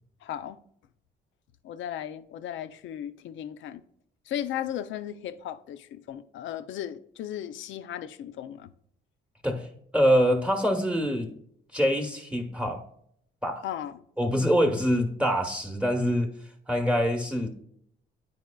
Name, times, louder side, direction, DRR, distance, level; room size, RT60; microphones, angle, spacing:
voice 1, 0.2-0.6 1.6-3.8 4.3-8.7 13.6-14.0, left 10 dB, 75° left, 0.5 m, -36 dB
voice 2, 9.9-11.3 11.7-12.8 13.4-13.6 14.2-16.3 16.7-17.5, equal, 5° right, 0.9 m, -24 dB
9.3 x 4.8 x 2.2 m
cardioid pair, 90°, 20 cm